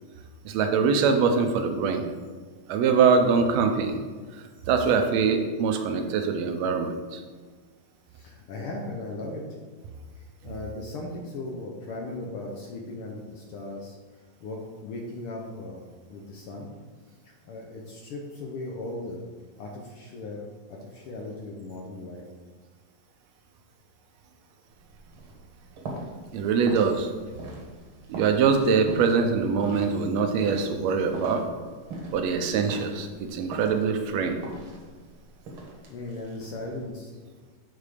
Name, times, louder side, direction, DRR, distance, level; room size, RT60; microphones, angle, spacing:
voice 1, 0.5-2.1 2.7-4.0 4.7-7.2 26.3-27.1 28.1-31.5 32.1-34.4, right 5 dB, 75° right, 6 dB, 1.8 m, -23 dB
voice 2, 8.1-9.4 10.2-14.0 14.4-15.8 16.1-16.7 17.2-19.2 19.6-20.4 20.7-22.2 35.9-37.1, left 2 dB, 70° left, -1 dB, 1.4 m, -37 dB
sound 1, 24.7-36.9, right 2 dB, 55° right, 1.8 m, -42 dB
8.2 x 4.1 x 5.0 m, 1.4 s
omnidirectional pair, 3.3 m